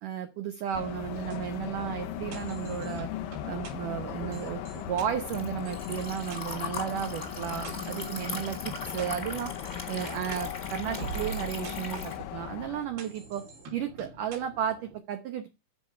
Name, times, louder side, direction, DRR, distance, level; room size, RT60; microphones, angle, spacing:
voice 1, 0.0-3.1 3.5-9.5 9.9-13.4 13.7-15.5, right 9 dB, 80° right, 7 dB, 1.9 m, -34 dB
sound 1, 0.7-12.9, left 12 dB, 90° left, 1.9 m, -38 dB
sound 2, 1.1-15.0, right 4 dB, 65° right, 4.6 m, -45 dB
Liquid, 3.9-12.2, left 3 dB, 25° left, 1.4 m, -40 dB
13.0 x 5.3 x 8.1 m, 0.28 s
omnidirectional pair, 5.3 m